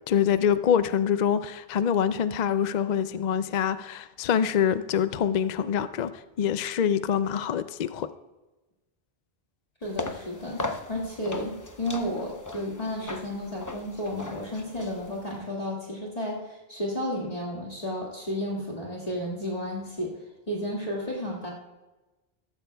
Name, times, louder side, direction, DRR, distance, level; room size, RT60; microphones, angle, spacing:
voice 1, 0.1-8.1, left 8 dB, 55° left, 12 dB, 0.5 m, -25 dB
voice 2, 9.8-10.6 10.9-20.1 20.5-21.5, left 1 dB, 40° left, -4 dB, 2.0 m, -32 dB
sound 1, 9.8-15.4, left 2 dB, 20° left, 0.7 m, -38 dB
14.5 x 14.0 x 2.3 m, 1.1 s
omnidirectional pair, 1.0 m